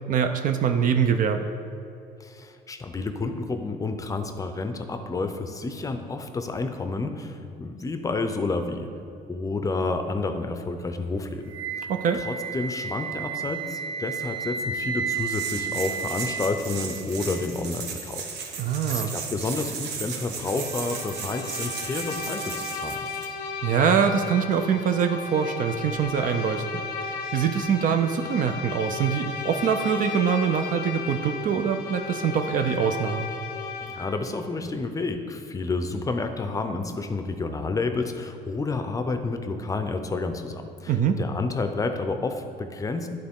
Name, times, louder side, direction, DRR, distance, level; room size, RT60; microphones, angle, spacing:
voice 1, 0.1-1.5 11.9-12.2 18.6-19.1 23.6-26.6 27.3-33.3 40.9-41.2, right 7 dB, 50° right, 6 dB, 0.4 m, -24 dB
voice 2, 2.2-8.9 9.3-11.5 11.8-11.9 12.2-18.5 18.9-23.1 33.8-43.1, left 3 dB, 20° left, 7 dB, 0.5 m, -30 dB
Wind instrument woodwind instrument, 11.5-17.5, right 6 dB, 30° right, 1.2 m, -32 dB
sound 1, 15.2-23.3, right 5 dB, 85° right, 1.1 m, -35 dB
Bowed string instrument, 20.4-34.3, left 5 dB, 80° left, 0.7 m, -35 dB
11.5 x 3.8 x 3.6 m, 2.6 s
cardioid pair, 110°, 17 cm